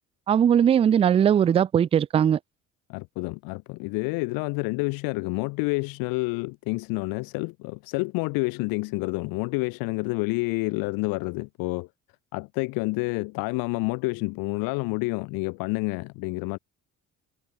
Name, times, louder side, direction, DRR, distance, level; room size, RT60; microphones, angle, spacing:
voice 1, 0.3-2.4, right 9 dB, 15° right, 0.3 m, -19 dB
voice 2, 2.9-11.9 12.3-16.6, left 26 dB, 60° left, 1.4 m, -29 dB
figure-of-eight pair, 50°, 40 cm